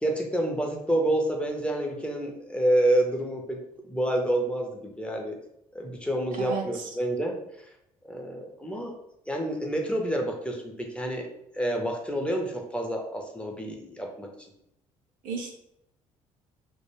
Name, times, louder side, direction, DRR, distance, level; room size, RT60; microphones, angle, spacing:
voice 1, 0.0-3.6 3.9-5.3 5.7-7.3 8.0-8.9 9.3-11.3 11.5-14.3, right 1 dB, 5° left, 1 dB, 0.6 m, -28 dB
voice 2, 6.4-6.9 15.2-15.5, right 4 dB, 50° right, 1 dB, 0.6 m, -33 dB
2.3 x 2.1 x 3.1 m, 0.79 s
hypercardioid pair, 50°, 18 cm